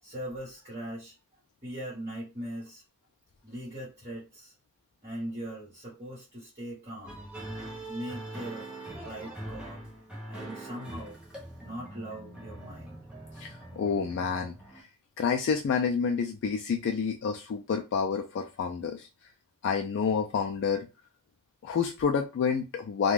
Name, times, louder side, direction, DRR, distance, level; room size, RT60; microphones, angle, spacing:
voice 1, 0.0-1.1 1.6-2.8 3.4-4.5 5.0-7.2 7.9-8.7 8.9-9.9 10.3-11.2 11.6-13.0, right 1 dB, 30° right, 1.2 m, -40 dB
sound 1, 7.0-14.8, right 1 dB, 5° right, 0.8 m, -43 dB
voice 2, 13.4-14.5 15.2-19.1 19.6-20.9 21.6-23.1, left 6 dB, 55° left, 0.3 m, -28 dB
2.4 x 2.2 x 3.2 m
head